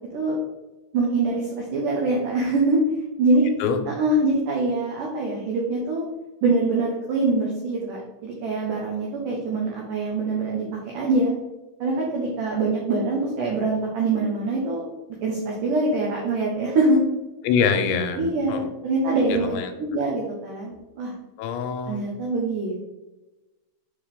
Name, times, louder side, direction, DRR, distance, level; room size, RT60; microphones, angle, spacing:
voice 1, 0.9-2.8 3.2-3.5 4.0-6.0 6.4-10.6 10.9-11.3 11.8-14.8 15.2-17.0 18.2-19.5 19.8-20.7 21.0-21.1 21.9-22.7, right 2 dB, 75° right, -2 dB, 1.9 m, -24 dB
voice 2, 17.4-18.7 19.3-19.7 21.4-22.1, left 6 dB, 90° left, 7 dB, 3.0 m, -24 dB
6.7 x 5.1 x 3.7 m, 1.1 s
omnidirectional pair, 5.2 m